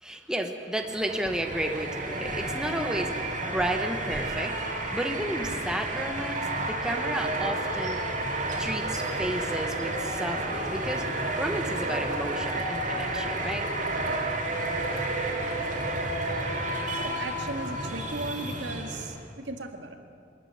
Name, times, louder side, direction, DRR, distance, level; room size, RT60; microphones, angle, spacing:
voice 1, 0.0-8.1 8.6-11.1 11.4-13.7, right 1 dB, 5° right, 4 dB, 1.2 m, -32 dB
sound 1, 0.8-19.2, right 2 dB, 45° right, 2.9 m, -31 dB
voice 2, 17.0-20.0, right 2 dB, 75° right, 4 dB, 1.9 m, -36 dB
23.0 x 13.5 x 9.6 m, 2.3 s
head